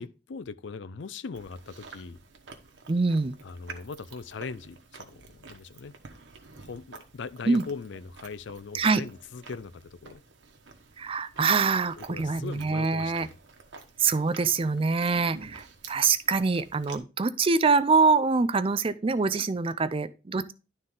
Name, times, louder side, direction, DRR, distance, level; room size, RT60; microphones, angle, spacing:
voice 1, 0.0-2.2 3.4-6.0 6.6-10.2 12.0-13.3, left 4 dB, 75° left, 0.5 m, -40 dB
Chewing mastication, 1.3-17.0, right 4 dB, 75° right, 1.2 m, -50 dB
voice 2, 2.9-3.4 7.4-7.6 8.7-9.0 11.0-13.3 14.0-20.5, right 4 dB, 30° right, 0.4 m, -25 dB
11.5 x 4.0 x 3.7 m
head